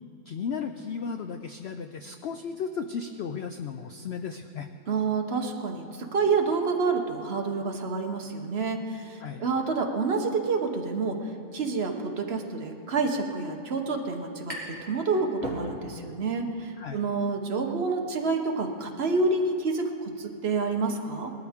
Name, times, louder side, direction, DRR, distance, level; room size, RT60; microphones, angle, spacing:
voice 1, 0.3-4.7 9.2-9.4 16.8-17.0, left 6 dB, 90° left, 7 dB, 0.5 m, -35 dB
voice 2, 4.9-21.3, right 4 dB, 45° right, 3 dB, 1.2 m, -28 dB
sound 1, 14.5-14.9 15.2-16.1, right 1 dB, 5° left, 2.6 m, -37 dB
19.5 x 13.0 x 3.6 m, 2.6 s
omnidirectional pair, 1.7 m